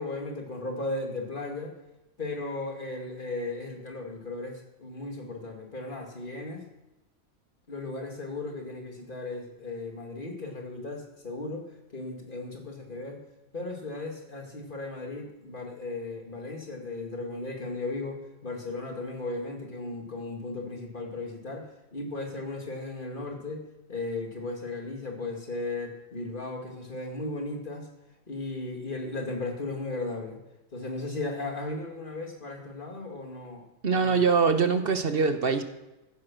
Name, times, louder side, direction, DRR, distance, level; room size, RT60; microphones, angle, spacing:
voice 1, 0.0-1.7 2.2-6.6 7.7-11.7 11.9-13.2 13.5-18.2 18.4-27.9 28.3-30.4 30.7-33.6 33.9-34.3, left 2 dB, 40° left, 1 dB, 2.5 m, -36 dB
voice 2, 33.8-35.6, right 5 dB, 50° right, 8 dB, 1.2 m, -23 dB
15.5 x 9.6 x 6.2 m, 0.99 s
omnidirectional pair, 1.3 m